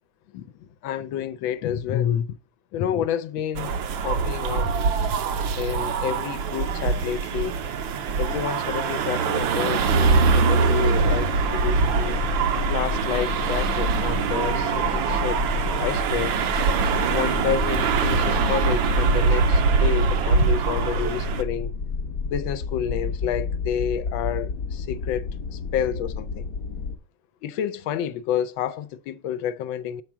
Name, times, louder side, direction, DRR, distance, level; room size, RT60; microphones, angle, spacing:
voice 1, 0.3-2.3 2.7-3.7 4.0-4.9 5.6-7.6 8.2-12.2 12.7-15.4 15.8-16.3 17.1-21.7 22.2-26.5 27.4-30.0, left 9 dB, 75° left, 1.4 m, -29 dB
sound 1, 3.5-21.4, right 5 dB, 75° right, 1.5 m, -23 dB
sound 2, 11.0-26.9, left 5 dB, 55° left, 1.1 m, -30 dB
7.3 x 4.5 x 6.1 m
omnidirectional pair, 2.2 m